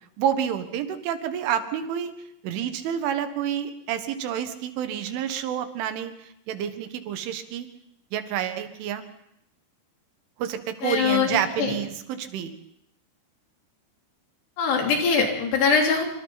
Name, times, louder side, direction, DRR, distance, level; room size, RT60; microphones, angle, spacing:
voice 1, 0.2-2.1 2.4-7.7 8.1-9.0 10.4-12.5, right 9 dB, 85° right, 8 dB, 3.9 m, -29 dB
voice 2, 10.8-11.7 14.6-16.0, left 5 dB, 65° left, 1 dB, 5.3 m, -22 dB
26.5 x 25.5 x 4.1 m, 0.78 s
omnidirectional pair, 5.4 m